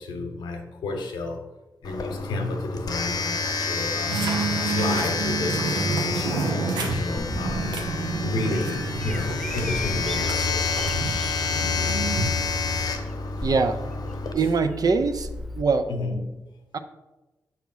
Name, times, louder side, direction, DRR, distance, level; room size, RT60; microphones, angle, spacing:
voice 1, 0.0-1.4 1.8-4.2 4.6-7.9 8.2-10.8 14.3-14.5 15.9-16.2, left 2 dB, 90° left, 4 dB, 0.9 m, -32 dB
Domestic sounds home sounds, 1.8-14.3, left 4 dB, 60° left, 0.8 m, -29 dB
sound 1, 4.1-12.4, right 3 dB, 90° right, 0.8 m, -29 dB
Bird vocalization bird call bird song, 7.2-15.6, left 1 dB, ahead, 0.5 m, -38 dB
voice 2, 13.4-13.9 14.3-15.3 15.6-15.9 16.7-16.8, right 4 dB, 55° right, 9 dB, 0.6 m, -23 dB
6.1 x 2.9 x 5.5 m, 1.1 s
supercardioid pair, 45°, 7 cm